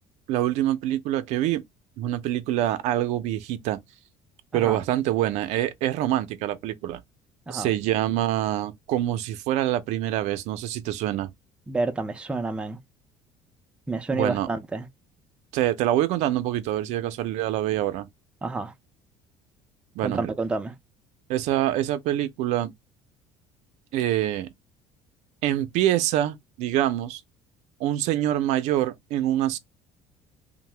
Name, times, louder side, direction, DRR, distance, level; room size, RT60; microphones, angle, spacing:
voice 1, 0.3-1.6 2.0-3.8 4.5-7.0 7.5-11.3 14.1-14.5 15.5-18.1 20.0-20.3 21.3-22.7 23.9-24.5 25.4-27.2 27.8-29.6, right 13 dB, 70° right, 0.4 m, -25 dB
voice 2, 11.7-12.8 13.9-14.9 18.4-18.7 20.0-20.7, right 3 dB, 10° right, 0.3 m, -29 dB
2.6 x 2.1 x 3.2 m
cardioid pair, 130°, 12 cm